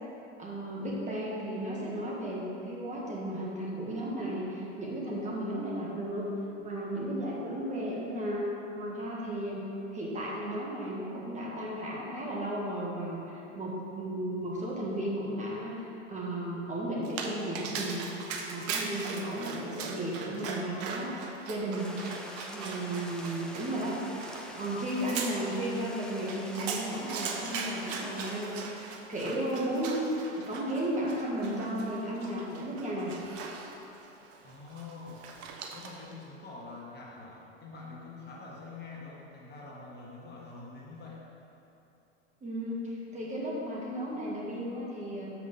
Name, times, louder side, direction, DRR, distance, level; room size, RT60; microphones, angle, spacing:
voice 1, 0.4-6.3 6.6-8.5 8.7-9.6 9.9-18.2 18.5-21.9 22.5-24.0 24.5-33.1 42.4-45.3, right 1 dB, 20° right, -4 dB, 1.5 m, -34 dB
Dog, 17.0-36.1, right 5 dB, 40° right, 0.9 m, -40 dB
sound 1, 21.8-28.5, left 1 dB, ahead, 0.6 m, -46 dB
voice 2, 34.4-35.2 35.7-41.2, left 3 dB, 30° left, -4 dB, 1.7 m, -45 dB
7.2 x 6.1 x 5.7 m, 2.9 s
hypercardioid pair, 105°, 37 cm